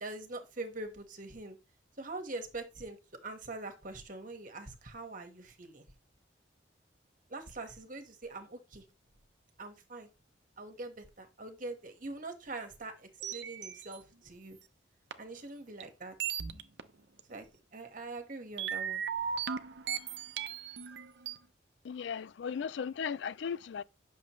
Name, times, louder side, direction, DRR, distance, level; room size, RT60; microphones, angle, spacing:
voice 1, 0.0-1.6 2.0-5.8 7.3-8.8 9.6-10.1 10.6-14.6 15.2-16.1 17.3-17.5 17.7-19.0, right 2 dB, 45° right, 1.5 m, -43 dB
sound 1, 13.2-14.0 15.1-15.2 15.8-15.9 16.2-16.8 17.2-17.3 18.6-21.4, right 7 dB, 65° right, 0.7 m, -37 dB
voice 2, 21.8-23.8, left 6 dB, 70° left, 0.4 m, -36 dB
10.5 x 6.5 x 3.1 m
head